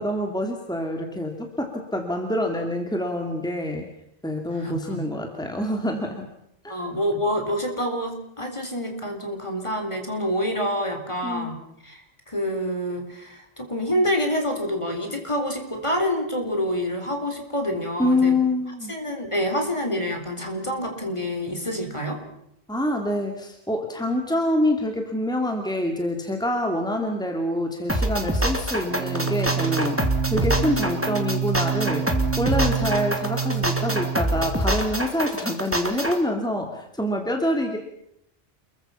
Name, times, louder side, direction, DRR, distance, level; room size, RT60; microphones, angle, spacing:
voice 1, 0.0-3.9 4.2-6.3 6.6-6.8 11.2-11.5 18.0-18.9 22.7-30.0 30.3-32.1 32.4-37.8, left 1 dB, 5° left, 3 dB, 2.7 m, -26 dB
voice 2, 4.5-5.1 6.7-11.6 11.8-18.3 18.9-22.2, equal, 30° left, 4 dB, 4.1 m, -27 dB
sound 1, 27.9-36.2, right 1 dB, 10° right, 2.8 m, -25 dB
sound 2, 28.9-34.6, right 8 dB, 80° right, 1.5 m, -28 dB
29.0 x 22.5 x 5.8 m, 0.76 s
omnidirectional pair, 1.1 m